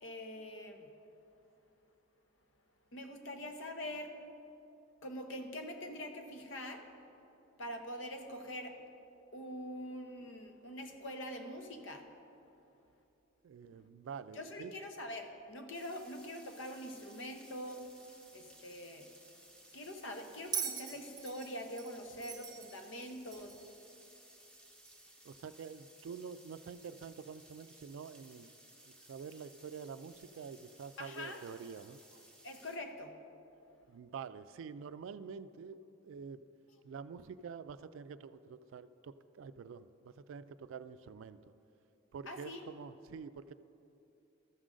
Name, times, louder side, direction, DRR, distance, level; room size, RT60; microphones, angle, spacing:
voice 1, 0.0-0.9 2.9-4.2 5.0-6.8 7.6-8.8 9.3-12.1 14.3-17.8 18.3-19.1 19.7-23.6 31.0-31.4 32.4-33.2 42.3-42.6, left 1 dB, 70° left, 5 dB, 0.8 m, -44 dB
voice 2, 13.4-14.7 25.2-28.5 28.8-32.0 33.9-36.5 36.8-41.4 42.1-43.5, right 6 dB, 75° right, 14 dB, 0.3 m, -47 dB
sound 1, 15.7-32.8, right 1 dB, 5° left, 0.8 m, -60 dB
Bell, 20.5-23.7 24.9-25.0, right 7 dB, 20° right, 0.5 m, -42 dB
13.5 x 6.2 x 3.8 m, 2.8 s
head